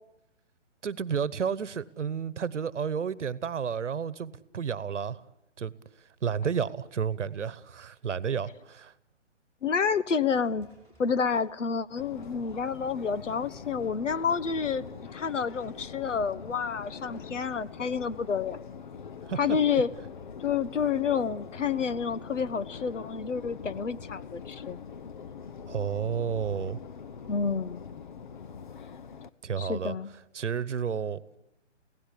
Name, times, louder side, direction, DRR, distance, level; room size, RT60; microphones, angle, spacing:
voice 1, 0.8-5.2 5.6-5.7 6.2-8.9 19.2-19.6 25.7-26.8 29.4-29.9 30.3-31.4, right 7 dB, 75° right, 1.1 m, -31 dB
voice 2, 9.6-10.7 11.0-18.6 19.4-19.9 20.4-24.8 27.3-27.8 29.6-30.1, left 6 dB, 80° left, 1.1 m, -29 dB
sound 1, 9.7-25.9, equal, 5° left, 5.6 m, -64 dB
Subway metro underground, 12.0-29.3, left 6 dB, 40° left, 0.7 m, -43 dB
24.0 x 17.0 x 8.4 m
hypercardioid pair, 160°, 36 cm